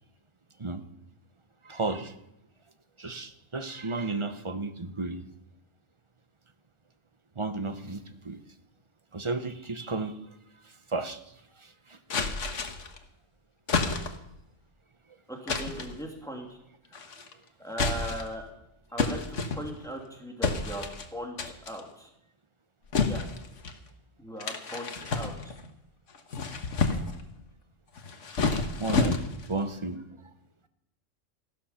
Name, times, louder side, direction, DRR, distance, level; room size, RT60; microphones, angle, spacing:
voice 1, 1.6-2.1 3.0-5.2 7.4-8.4 9.1-10.2 10.9-11.2 11.6-12.0 28.5-29.2 29.5-30.0, right 3 dB, 25° right, 9 dB, 0.9 m, -33 dB
sound 1, 12.1-13.0 13.7-14.3 15.5-16.0 16.9-17.3 17.7-18.4 19.0-19.9 20.4-21.1 21.4-21.8 22.9-23.8 24.4-25.7 26.1-27.2 28.0-29.5, left 4 dB, 70° left, 1.6 m, -30 dB
voice 2, 15.3-16.6 16.9-17.1 17.6-18.4 18.9-21.4 21.7-22.1 23.0-23.2 24.2-25.5, right 1 dB, 5° left, 0 dB, 2.5 m, -39 dB
14.5 x 12.5 x 5.7 m, 0.83 s
omnidirectional pair, 1.3 m